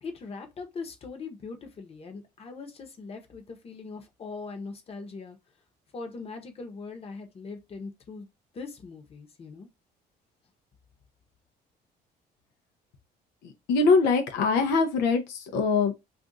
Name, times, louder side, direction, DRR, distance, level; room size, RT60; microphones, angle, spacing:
voice 1, 0.0-5.4 5.9-8.3 8.5-9.7, left 4 dB, 35° left, 0.9 m, -41 dB
voice 2, 13.4-15.9, left 4 dB, 85° left, 0.7 m, -23 dB
2.5 x 2.4 x 3.8 m
cardioid pair, 110°, 17 cm